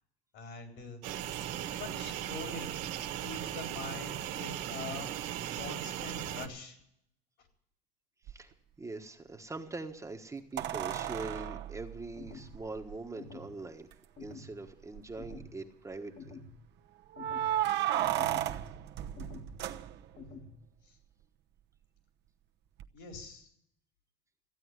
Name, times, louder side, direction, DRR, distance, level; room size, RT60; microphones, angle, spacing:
voice 1, 0.3-1.0 1.8-2.8 3.2-5.1 5.6-6.8 20.9-21.0 22.9-23.5, left 4 dB, 60° left, 4 dB, 4.0 m, -44 dB
sound 1, 1.0-6.5, right 12 dB, 80° right, 1.6 m, -38 dB
sound 2, 8.3-8.4 10.6-13.0 13.9-14.0 14.3-14.4 15.0-15.4 17.1-20.3 22.8-22.9, right 12 dB, 55° right, 1.0 m, -34 dB
voice 2, 8.8-13.9 14.2-16.4, right 3 dB, 15° right, 3 dB, 1.3 m, -43 dB
sound 3, 12.2-12.6 13.2-13.6 14.2-14.6 15.2-15.6 16.2-16.6 17.2-17.6 18.2-18.6 19.2-19.6 20.2-20.6, left 4 dB, 45° left, 1.8 m, -48 dB
15.0 x 8.7 x 9.6 m, 0.73 s
supercardioid pair, 105°, 21 cm